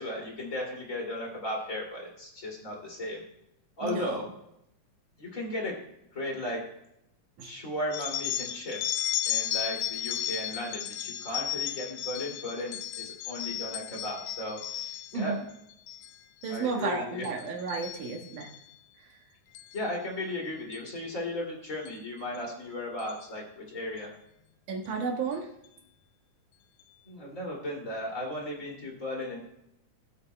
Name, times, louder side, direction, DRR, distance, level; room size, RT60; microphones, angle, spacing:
voice 1, 0.0-3.2 3.8-4.2 5.2-5.8 6.1-6.6 7.4-15.4 16.5-17.3 19.7-24.1 27.0-29.4, left 1 dB, 25° left, -1 dB, 2.6 m, -36 dB
voice 2, 3.8-4.2 7.4-7.5 15.1-15.4 16.4-18.5 24.7-25.5, right 4 dB, 75° right, 1 dB, 3.0 m, -32 dB
sound 1, 7.9-15.2 15.7-16.1 16.4-16.8 17.2-18.6 19.5-19.8 20.7-20.9 21.9-22.0 22.3-22.4 23.0-23.2, left 12 dB, 80° left, 1.6 m, -34 dB
20.0 x 8.1 x 2.2 m, 0.80 s
omnidirectional pair, 3.7 m